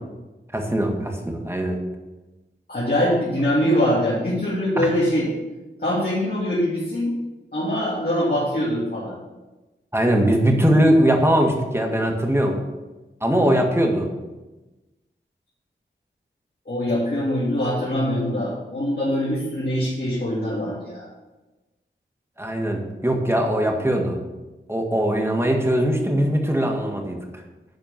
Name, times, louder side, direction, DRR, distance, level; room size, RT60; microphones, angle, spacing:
voice 1, 0.5-1.8 4.8-4.9 9.9-12.6 13.2-14.1 22.4-24.2 24.7-27.4, right 1 dB, 10° right, 2 dB, 1.8 m, -21 dB
voice 2, 2.7-5.3 5.8-7.2 7.5-9.2 16.6-21.0, equal, 50° left, -9 dB, 3.1 m, -23 dB
11.0 x 4.5 x 5.9 m, 1.1 s
wide cardioid pair, 50°, 20 cm